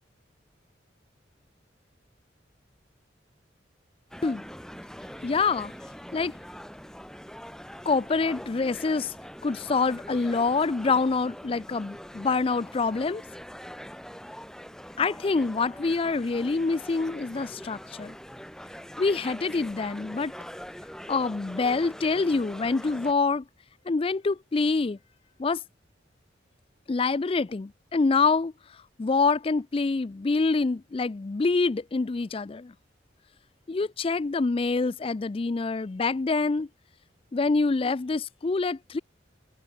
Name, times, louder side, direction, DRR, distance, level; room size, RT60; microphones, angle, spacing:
sound 1, 4.1-23.1, equal, 5° left, 6.0 m, -43 dB
voice 1, 5.2-5.7 6.1-6.3 7.9-9.1 9.4-13.2 15.0-18.2 19.0-20.3 21.1-23.4 23.9-25.0 25.4-25.6 26.9-28.5 29.0-32.7 33.7-36.7 37.3-39.0, left 4 dB, 30° left, 0.4 m, -26 dB
head